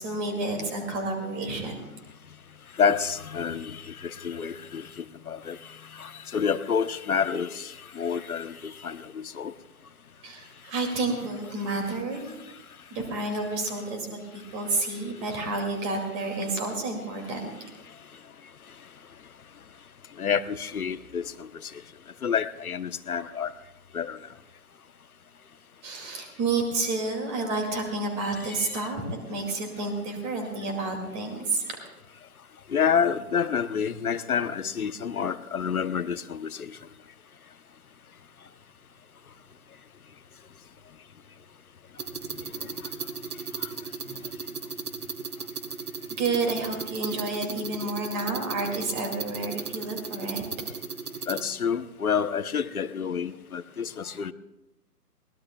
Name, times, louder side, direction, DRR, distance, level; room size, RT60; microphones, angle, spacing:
voice 1, 0.0-1.9 10.2-12.3 12.9-17.4 25.8-31.6 46.2-50.4, right 3 dB, 20° right, 3 dB, 2.4 m, -30 dB
voice 2, 2.8-5.6 6.0-9.5 20.2-21.5 22.2-23.5 23.9-24.2 28.6-28.7 32.7-36.6 51.3-54.3, left 7 dB, 65° left, 13 dB, 1.0 m, -28 dB
sound 1, 42.0-51.4, right 5 dB, 65° right, 1.3 m, -36 dB
22.0 x 20.5 x 2.3 m, 0.96 s
figure-of-eight pair, 150°, 47 cm